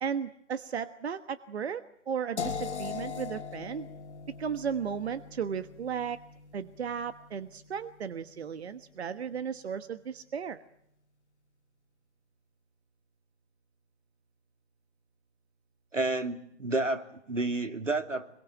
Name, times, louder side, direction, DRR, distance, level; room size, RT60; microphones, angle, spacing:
voice 1, 0.0-3.9 4.4-6.2 6.5-10.6, right 7 dB, 60° right, 12 dB, 1.4 m, -35 dB
sound 1, 2.4-8.3, left 6 dB, 65° left, 1.6 m, -41 dB
voice 2, 15.9-18.3, right 2 dB, 85° right, 8 dB, 2.6 m, -30 dB
26.0 x 23.0 x 8.9 m, 0.77 s
figure-of-eight pair, 125°, 37 cm